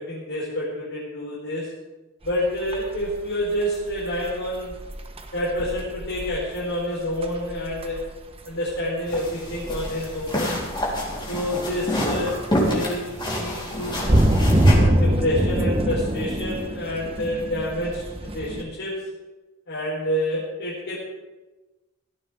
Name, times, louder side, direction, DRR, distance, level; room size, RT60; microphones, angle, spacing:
voice 1, 0.0-1.7 2.2-4.8 5.3-8.0 8.4-10.6 11.3-14.1 14.8-19.1 19.7-21.0, left 1 dB, 60° left, -7 dB, 4.3 m, -28 dB
sound 1, 2.2-18.6, right 1 dB, 25° right, 1.2 m, -25 dB
sound 2, 9.1-14.8, left 1 dB, 20° left, 4.1 m, -28 dB
17.0 x 14.0 x 3.7 m, 1.2 s
head